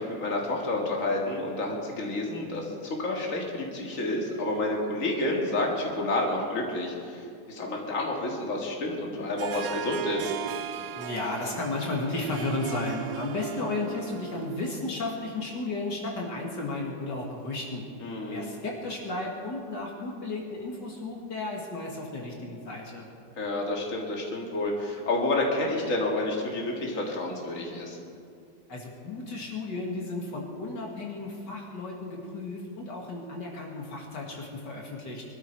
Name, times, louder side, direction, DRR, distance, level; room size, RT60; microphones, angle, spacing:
voice 1, 0.0-10.3 18.0-18.5 23.4-28.0, left 2 dB, 45° left, -1 dB, 2.5 m, -29 dB
Harp, 9.4-14.8, right 10 dB, 70° right, 0.9 m, -37 dB
voice 2, 10.9-17.8 18.3-23.1 28.7-35.2, left 2 dB, 70° left, -1 dB, 2.6 m, -34 dB
24.0 x 13.0 x 4.6 m, 2.4 s
omnidirectional pair, 2.0 m